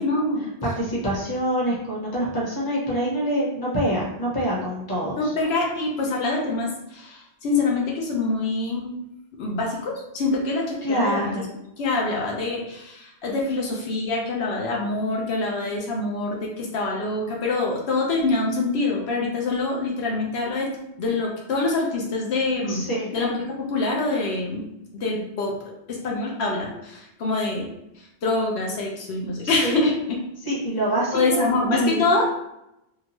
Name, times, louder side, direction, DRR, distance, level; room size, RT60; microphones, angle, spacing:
voice 1, 0.0-0.5 5.2-9.0 9.4-11.3 11.8-20.7 21.0-22.9 23.1-24.6 24.9-25.6 25.9-27.7 28.0-30.2 31.1-32.3, left 3 dB, 75° left, -2 dB, 0.8 m, -25 dB
voice 2, 0.6-5.2 10.8-11.5 22.7-23.1 29.4-29.8 30.4-32.1, right 1 dB, 20° left, -5 dB, 0.9 m, -25 dB
2.8 x 2.2 x 2.9 m, 0.84 s
omnidirectional pair, 1.1 m